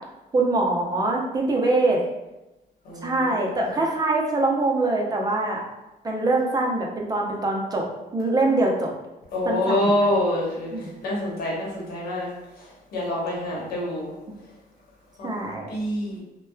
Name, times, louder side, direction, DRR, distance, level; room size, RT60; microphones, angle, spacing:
voice 1, 0.3-2.0 3.0-5.6 6.0-7.8 8.1-8.9 9.4-10.1 10.7-10.9 13.5-13.6 15.2-15.7, right 2 dB, 20° right, -1 dB, 0.6 m, -23 dB
voice 2, 2.9-3.6 9.3-10.7 11.0-12.3 12.9-14.1 15.2-15.3 15.7-16.2, left 1 dB, 65° left, -4 dB, 1.0 m, -26 dB
2.9 x 2.1 x 2.2 m, 0.99 s
cardioid pair, 95°, 17 cm